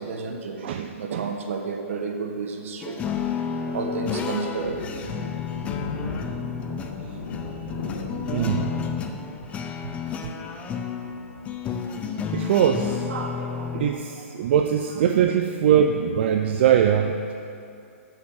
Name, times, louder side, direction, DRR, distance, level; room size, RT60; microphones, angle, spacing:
voice 1, 0.0-0.6 1.0-3.0 3.5-4.8 12.9-14.2 14.9-15.0, right 4 dB, 65° right, 3 dB, 1.3 m, -32 dB
voice 2, 0.6-1.3 8.2-8.7 12.3-13.0 13.7-17.3, right 9 dB, 50° right, 6 dB, 0.5 m, -22 dB
sound 1, 2.8-13.9, left 6 dB, 15° left, 0.6 m, -31 dB
Thunder, 4.3-12.4, left 3 dB, 80° left, 2.0 m, -37 dB
8.8 x 6.8 x 7.4 m, 2.5 s
hypercardioid pair, 155°, 8 cm